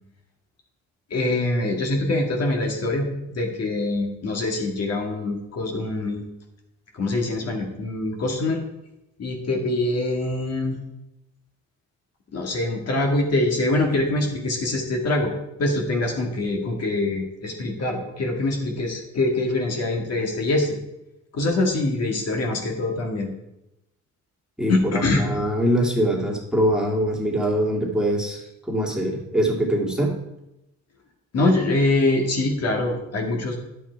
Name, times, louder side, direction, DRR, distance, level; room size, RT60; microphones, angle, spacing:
voice 1, 1.1-3.1 3.3-6.2 6.9-8.6 9.2-10.8 12.3-15.3 15.6-20.8 21.3-23.3 24.7-25.3 31.3-33.6, left 2 dB, 55° left, 1 dB, 2.0 m, -24 dB
voice 2, 24.6-28.4 28.7-30.1, equal, ahead, -3 dB, 2.4 m, -23 dB
9.4 x 7.6 x 4.6 m, 0.90 s
cardioid pair, 90°, 30 cm